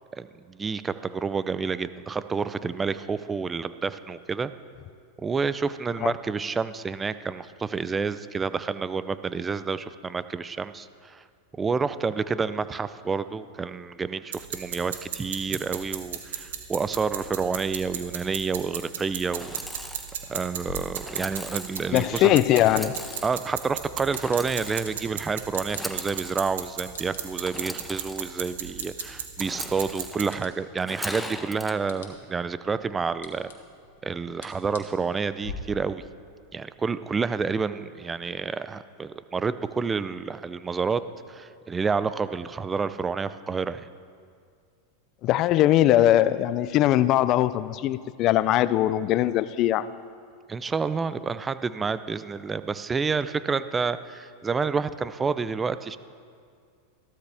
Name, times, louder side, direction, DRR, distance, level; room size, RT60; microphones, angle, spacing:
voice 1, 0.1-4.5 5.2-11.2 11.5-19.5 20.3-22.4 23.2-33.5 34.0-36.0 36.5-41.0 41.3-43.9 50.5-56.0, right 5 dB, 20° right, 14 dB, 0.5 m, -29 dB
sound 1, 14.3-30.2, right 8 dB, 80° right, 1.3 m, -36 dB
Engine / Sawing, 19.3-20.2 21.0-21.8 22.6-23.4 24.1-25.0 25.6-26.4 27.4-28.2 29.4-30.2 30.8-31.7, left 1 dB, 5° left, 1.0 m, -38 dB
sound 2, 20.6-35.5, left 5 dB, 80° left, 1.8 m, -49 dB
voice 2, 21.9-22.9 45.2-49.9, left 13 dB, 45° left, 16 dB, 0.5 m, -21 dB
15.0 x 13.0 x 3.5 m, 2.2 s
hypercardioid pair, 110°, 0 cm